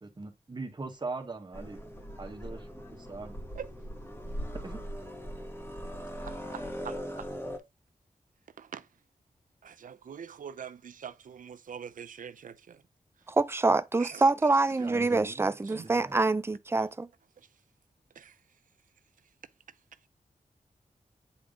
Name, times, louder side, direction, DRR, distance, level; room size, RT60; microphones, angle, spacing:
voice 1, 0.0-1.8 2.2-3.4 4.6-4.8 14.8-16.4, right 3 dB, 35° right, 1.6 m, -41 dB
sound 1, 1.5-7.6, equal, 20° left, 1.7 m, -40 dB
voice 2, 6.2-7.3 8.6-8.9 9.6-12.8 14.0-14.3 15.7-15.9 18.2-18.3, right 7 dB, 85° right, 0.6 m, -44 dB
voice 3, 13.3-17.1, right 3 dB, 20° right, 0.5 m, -26 dB
9.5 x 3.7 x 3.8 m
wide cardioid pair, 130°, 13 cm